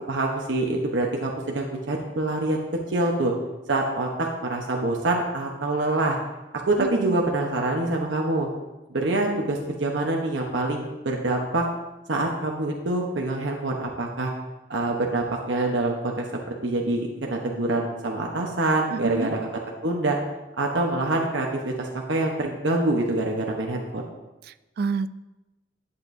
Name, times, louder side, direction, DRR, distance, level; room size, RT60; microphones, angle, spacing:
voice 1, 0.1-2.6 2.9-3.3 3.7-6.2 6.7-8.5 8.9-11.7 12.1-14.3 14.7-16.3 16.6-19.5 19.8-20.2 20.6-24.0, right 2 dB, 85° right, 0 dB, 1.0 m, -25 dB
voice 2, 6.8-7.2 18.9-19.3 24.5-25.1, right 4 dB, 55° right, 15 dB, 0.3 m, -29 dB
11.0 x 8.2 x 2.7 m, 1.1 s
head